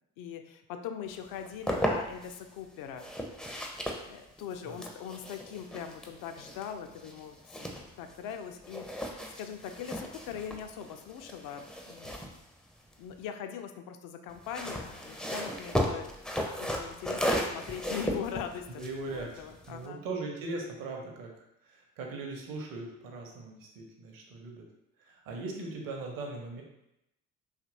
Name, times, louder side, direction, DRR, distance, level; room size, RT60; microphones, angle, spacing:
voice 1, 0.2-3.1 3.5-3.8 4.1-7.7 8.0-12.4 13.0-16.1 16.6-18.8 19.1-20.0, left 8 dB, 60° left, 7 dB, 0.4 m, -41 dB
sound 1, 1.2-2.4 3.0-8.4 8.6-13.3 14.3-19.9, equal, ahead, 0.4 m, -36 dB
voice 2, 18.8-24.7 25.0-26.6, right 3 dB, 60° right, 0 dB, 0.7 m, -40 dB
2.8 x 2.5 x 2.7 m, 0.83 s
hypercardioid pair, 50°, 38 cm